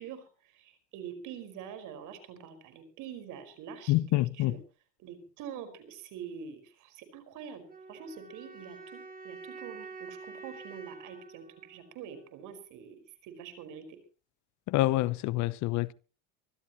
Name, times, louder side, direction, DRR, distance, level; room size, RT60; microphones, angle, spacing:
voice 1, 0.0-4.6 5.0-13.0 13.2-14.0, right 8 dB, 60° right, 5.0 m, -45 dB
voice 2, 3.9-4.5 14.7-15.9, left 17 dB, 55° left, 0.9 m, -27 dB
sound 1, 7.7-12.7, right 4 dB, 25° right, 7.4 m, -48 dB
24.5 x 14.0 x 3.1 m
supercardioid pair, 115°, 35 cm